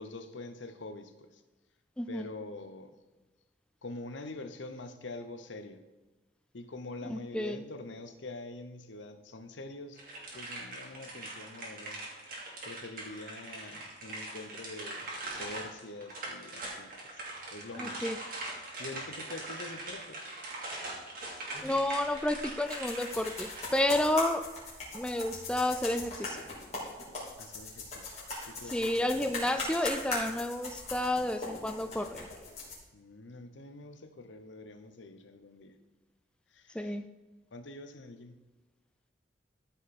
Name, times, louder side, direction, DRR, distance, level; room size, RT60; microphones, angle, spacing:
voice 1, 0.0-1.4 2.1-2.9 3.8-5.8 6.5-10.0 10.3-12.0 12.6-15.1 15.4-17.2 17.5-18.0 18.5-20.2 27.4-29.2 32.9-35.8 36.5-37.0 37.5-38.4, left 2 dB, 85° left, 8 dB, 0.9 m, -45 dB
voice 2, 7.1-7.6 17.8-18.2 21.6-24.4 24.9-26.4 28.7-32.3 36.8-37.1, left 1 dB, 5° left, 8 dB, 0.4 m, -31 dB
sound 1, 10.0-23.7, right 2 dB, 50° right, 2.6 m, -42 dB
sound 2, 21.5-32.7, left 2 dB, 35° left, 3.5 m, -40 dB
14.0 x 5.4 x 4.2 m, 1.2 s
head